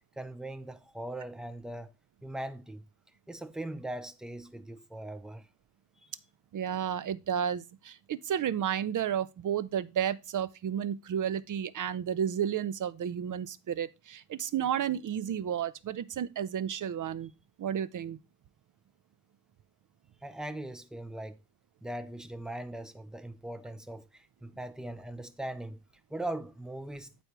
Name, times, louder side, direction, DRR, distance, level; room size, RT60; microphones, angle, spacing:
voice 1, 0.2-1.9 2.2-2.9 3.3-5.5 20.2-21.4 21.8-25.8 26.1-27.2, right 1 dB, ahead, 0.6 m, -40 dB
voice 2, 6.5-17.3 17.6-18.2, right 9 dB, 55° right, 0.6 m, -32 dB
8.0 x 4.3 x 4.5 m
cardioid pair, 100°, 38 cm